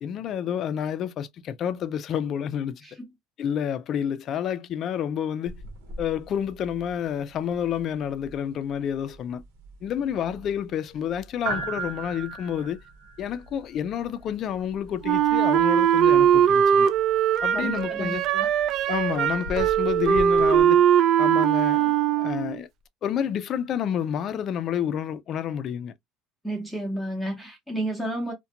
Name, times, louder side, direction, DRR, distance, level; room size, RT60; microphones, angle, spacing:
voice 1, 0.0-2.8 3.4-5.5 6.0-9.4 9.8-12.8 13.2-16.9 17.4-18.3 18.9-20.8 21.2-22.7 23.0-25.9, left 9 dB, 45° left, 0.4 m, -29 dB
sound 1, 5.5-20.6, right 3 dB, 85° right, 0.9 m, -40 dB
Wind instrument woodwind instrument, 15.0-22.6, right 9 dB, 50° right, 0.3 m, -20 dB
voice 2, 17.5-18.5 26.4-28.3, right 1 dB, ahead, 0.8 m, -31 dB
2.4 x 2.2 x 2.7 m
cardioid pair, 125°, 0 cm